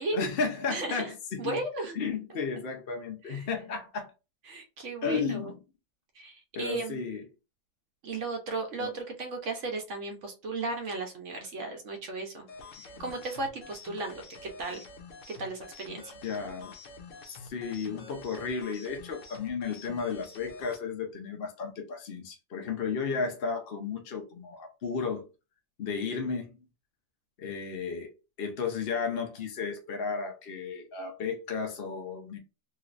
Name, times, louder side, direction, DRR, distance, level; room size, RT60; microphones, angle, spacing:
voice 1, 0.1-1.6 1.9-4.1 5.0-5.6 6.6-7.2 8.8-8.9 12.9-13.0 16.0-16.8 17.4-25.3 25.8-26.6 27.4-28.1 28.4-32.4, left 5 dB, 55° left, 0.8 m, -33 dB
voice 2, 0.7-2.0 3.2-3.5 4.5-5.5 6.1-7.0 8.0-12.5 12.8-14.8 15.3-16.1, right 3 dB, 65° right, 1.1 m, -35 dB
sound 1, 12.5-20.8, left 3 dB, 75° left, 1.1 m, -48 dB
3.0 x 3.0 x 2.5 m
omnidirectional pair, 1.4 m